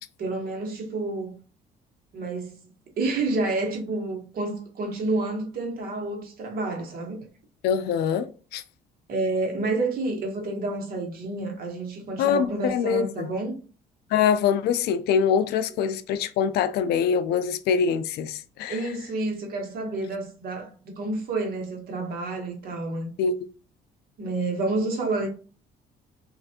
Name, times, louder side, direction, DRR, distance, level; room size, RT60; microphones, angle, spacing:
voice 1, 0.2-1.3 2.1-2.7 3.0-7.3 9.1-13.6 18.7-23.1 24.2-25.3, right 2 dB, 60° right, 1.1 m, -29 dB
voice 2, 7.6-8.6 12.2-13.3 14.1-18.8 23.2-23.5, left 7 dB, 75° left, 0.4 m, -24 dB
3.2 x 2.5 x 2.7 m
cardioid pair, 110°, 17 cm